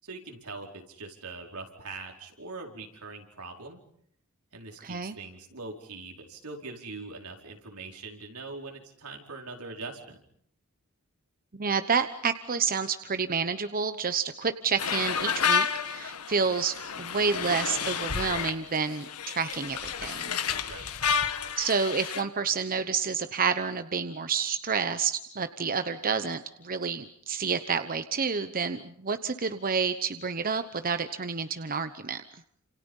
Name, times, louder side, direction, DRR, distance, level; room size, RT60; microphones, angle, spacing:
voice 1, 0.0-3.8 4.5-10.2 20.6-20.9, right 3 dB, 80° right, 2 dB, 4.7 m, -42 dB
voice 2, 4.8-5.2 11.5-20.4 21.6-32.2, right 5 dB, 40° right, 10 dB, 1.0 m, -29 dB
sound 1, 14.8-22.2, left 6 dB, 85° left, 1.7 m, -30 dB
29.5 x 27.5 x 5.5 m, 0.67 s
head